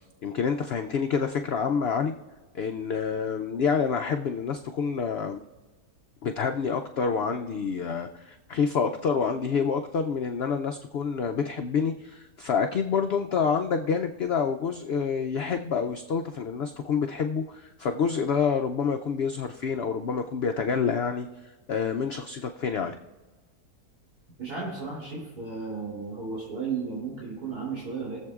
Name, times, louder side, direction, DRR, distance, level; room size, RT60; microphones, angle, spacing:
voice 1, 0.2-2.1 2.5-5.4 6.2-23.0, left 6 dB, 85° left, 6 dB, 0.5 m, -28 dB
voice 2, 24.4-28.2, right 4 dB, 85° right, -6 dB, 3.7 m, -34 dB
22.5 x 7.5 x 2.4 m, 1.2 s
omnidirectional pair, 1.6 m